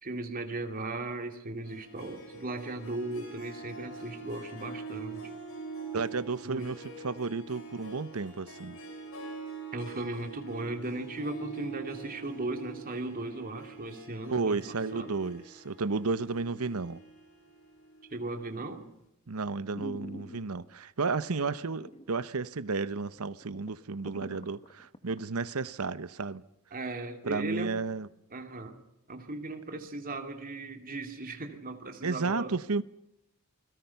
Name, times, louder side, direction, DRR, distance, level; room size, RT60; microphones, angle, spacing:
voice 1, 0.0-5.4 6.4-6.7 9.7-15.1 18.1-18.9 26.7-27.8 28.3-28.8 29.1-32.5, right 2 dB, 40° right, 2.6 m, -37 dB
Harp, 1.6-18.4, right 4 dB, 70° left, 6.2 m, -45 dB
voice 2, 5.9-8.8 14.3-17.0 19.3-26.4 27.2-28.1 32.0-32.8, right 4 dB, 75° right, 0.9 m, -32 dB
sound 1, 19.3-19.4 19.7-20.8 21.4-22.1 22.4-22.5 23.0-23.1 23.3-25.2 25.6-25.7, left 1 dB, 30° left, 1.6 m, -45 dB
29.0 x 22.0 x 5.8 m
head